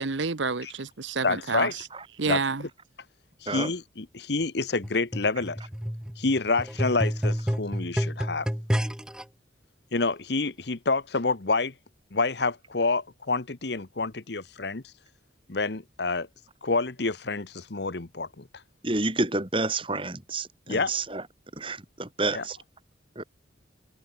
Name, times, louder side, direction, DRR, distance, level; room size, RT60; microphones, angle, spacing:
voice 1, 0.0-1.9 2.2-2.7, right 4 dB, 75° right, 1.0 m, -29 dB
voice 2, 1.2-1.7 2.2-2.4 3.4-5.6 6.2-8.5 9.9-11.7 12.1-14.8 15.5-16.3 16.6-18.4 20.7-20.9 22.3-22.4, left 3 dB, 60° left, 1.1 m, -28 dB
sound 1, 4.8-9.2 10.0-10.1, equal, 5° right, 0.9 m, -29 dB
voice 3, 18.8-21.2 21.6-22.6 23.2-23.3, right 2 dB, 25° right, 3.0 m, -29 dB
head